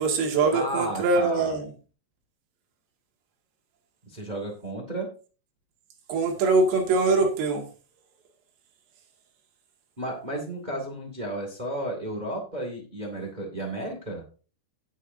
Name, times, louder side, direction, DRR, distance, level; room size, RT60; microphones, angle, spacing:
voice 1, 0.0-1.6 6.1-7.6, right 3 dB, 75° right, 1 dB, 4.2 m, -23 dB
voice 2, 0.5-1.6 4.1-5.1 10.0-14.2, right 1 dB, 35° right, 1 dB, 0.7 m, -33 dB
17.0 x 6.4 x 2.7 m, 0.36 s
omnidirectional pair, 5.0 m